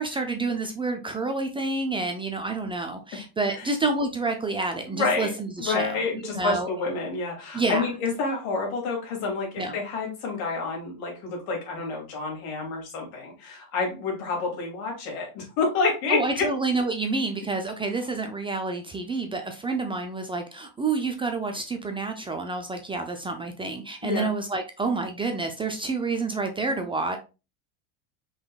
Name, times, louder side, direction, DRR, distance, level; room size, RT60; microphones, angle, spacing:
voice 1, 0.0-6.7 7.5-7.9 9.6-9.8 16.1-27.2, right 3 dB, 15° right, 5 dB, 0.4 m, -28 dB
voice 2, 4.9-16.5 24.0-24.3, left 4 dB, 80° left, 0 dB, 2.4 m, -29 dB
5.2 x 3.8 x 2.3 m, 0.29 s
supercardioid pair, 125°, 41 cm